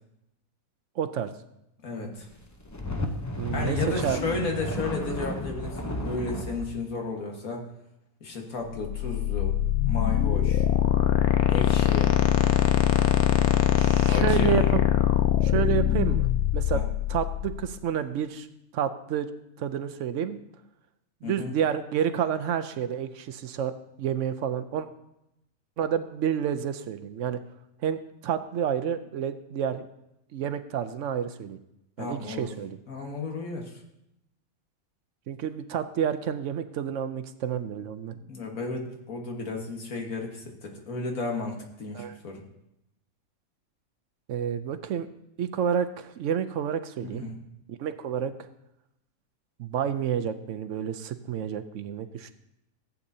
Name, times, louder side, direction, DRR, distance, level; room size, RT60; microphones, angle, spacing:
voice 1, 1.0-1.3 3.4-3.8 4.0-4.2 13.8-14.9 15.4-16.3 16.5-16.8 17.1-18.5 18.7-19.3 19.6-20.4 21.2-23.7 24.0-24.9 25.8-27.4 27.8-29.8 30.3-31.6 32.0-32.8 35.3-38.1 41.9-42.2 44.3-45.1 45.4-47.2 47.7-48.3 49.6-52.3, right 8 dB, 65° right, 10 dB, 0.9 m, -29 dB
voice 2, 1.8-2.3 3.5-7.7 8.2-9.5 9.9-10.7 11.5-12.1 14.0-14.7 16.7-16.9 21.2-21.6 32.0-32.5 32.9-33.8 38.3-42.4 47.0-47.3, left 3 dB, 75° left, 1 dB, 1.9 m, -33 dB
sound 1, 2.4-6.7, left 1 dB, 25° left, 0.4 m, -32 dB
sound 2, 8.8-17.6, left 11 dB, 90° left, 1.2 m, -22 dB
14.5 x 8.5 x 2.7 m, 0.84 s
omnidirectional pair, 1.5 m